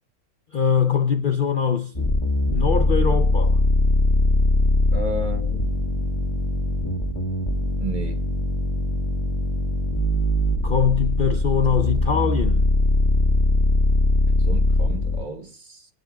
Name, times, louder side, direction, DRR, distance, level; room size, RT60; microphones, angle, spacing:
voice 1, 0.5-2.1 2.5-3.6 10.6-12.6, left 7 dB, 50° left, 0.7 m, -22 dB
sound 1, 1.9-15.2, left 1 dB, 25° left, 1.6 m, -21 dB
voice 2, 4.9-5.7 7.8-8.2 14.4-15.9, right 2 dB, 35° right, 1.2 m, -32 dB
28.5 x 9.9 x 2.3 m
omnidirectional pair, 1.5 m